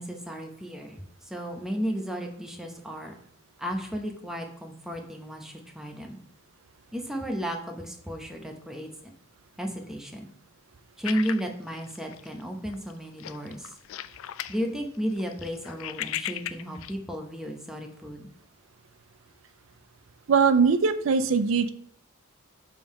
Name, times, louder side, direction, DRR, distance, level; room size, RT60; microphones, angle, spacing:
voice 1, 0.0-3.1 3.6-6.2 6.9-8.9 9.6-10.3 11.0-13.8 14.5-18.3, equal, ahead, 2 dB, 0.8 m, -33 dB
sound 1, 11.0-12.4 12.7-12.9 13.2-14.6 14.9-16.9, left 12 dB, 75° left, 0.3 m, -36 dB
voice 2, 20.3-21.7, right 5 dB, 70° right, 11 dB, 0.4 m, -21 dB
6.8 x 3.7 x 5.3 m, 0.65 s
head